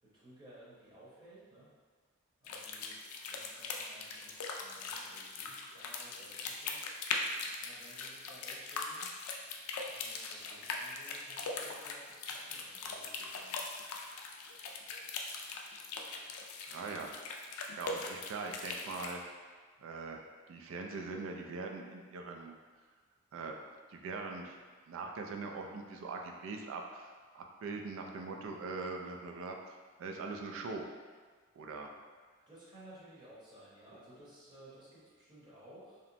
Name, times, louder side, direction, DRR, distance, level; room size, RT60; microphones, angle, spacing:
voice 1, 0.0-1.7 2.4-6.9 7.6-9.1 9.8-13.6 32.5-36.0, right 1 dB, 20° right, -9 dB, 0.8 m, -57 dB
sound 1, 2.4-19.2, left 4 dB, 90° left, 0.3 m, -41 dB
voice 2, 16.7-17.1 17.8-19.2 19.8-22.6 23.3-23.5 23.9-29.6 30.0-30.9 31.6-31.9, right 3 dB, 65° right, 2 dB, 0.3 m, -42 dB
2.8 x 2.1 x 2.5 m, 1.5 s
head